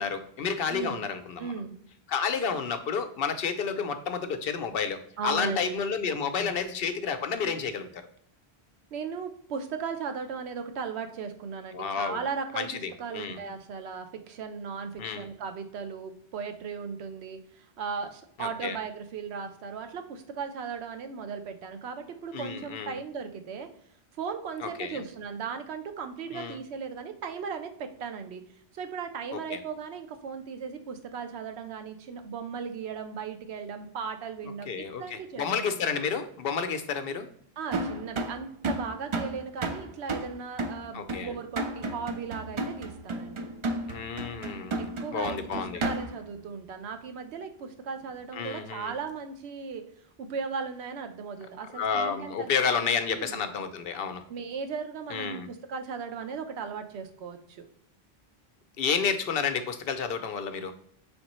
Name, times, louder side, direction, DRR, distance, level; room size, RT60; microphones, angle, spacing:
voice 1, 0.0-1.5 2.1-8.1 11.7-12.2 12.5-13.4 15.0-15.3 18.4-18.8 22.3-23.0 24.6-25.0 26.3-26.6 29.5-29.6 34.7-37.3 40.9-41.3 43.9-45.8 48.3-48.9 51.7-54.2 55.1-55.5 58.8-60.7, left 6 dB, 70° left, 9 dB, 0.7 m, -30 dB
voice 2, 0.7-1.0 1.4-1.7 5.2-5.7 6.4-6.6 8.9-23.7 24.1-28.4 28.7-34.7 35.0-36.0 37.6-43.5 44.8-49.9 50.2-53.4 54.3-57.6, right 6 dB, 90° right, 7 dB, 0.9 m, -37 dB
sound 1, 37.7-46.3, right 2 dB, 45° right, 0.4 m, -33 dB
5.0 x 3.5 x 3.0 m, 0.66 s
omnidirectional pair, 1.1 m